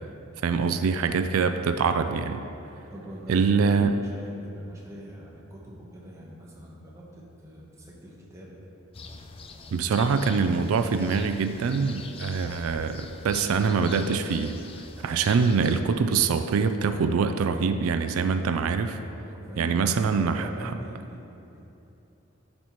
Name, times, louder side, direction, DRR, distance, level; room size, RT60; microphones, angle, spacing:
voice 1, 0.4-2.4 3.3-4.0 9.7-14.6 15.0-19.0 19.6-20.7, right 5 dB, 90° right, 9 dB, 0.3 m, -24 dB
voice 2, 2.9-8.5 15.0-15.2 18.9-21.6, right 1 dB, 15° right, -4 dB, 1.0 m, -42 dB
sound 1, 8.9-15.8, left 4 dB, 25° left, 0.3 m, -43 dB
10.5 x 5.4 x 3.0 m, 2.9 s
head